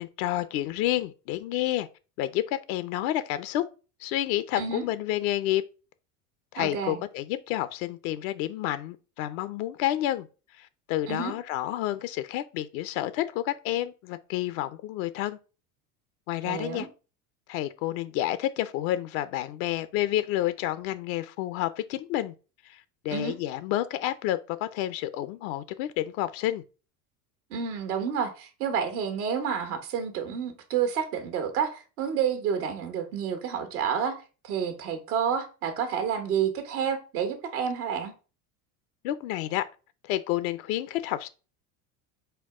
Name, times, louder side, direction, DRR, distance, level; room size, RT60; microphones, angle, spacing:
voice 1, 0.0-1.9 2.2-3.7 4.0-5.7 6.5-10.3 10.6-15.4 16.3-16.9 17.5-22.3 22.6-26.6 39.0-39.7 40.0-41.3, left 13 dB, 65° left, 0.6 m, -29 dB
voice 2, 6.6-7.0 11.1-11.3 16.4-16.9 23.1-23.3 27.5-38.1, right 7 dB, 80° right, 1.3 m, -29 dB
4.4 x 2.3 x 4.7 m
hypercardioid pair, 90°, 44 cm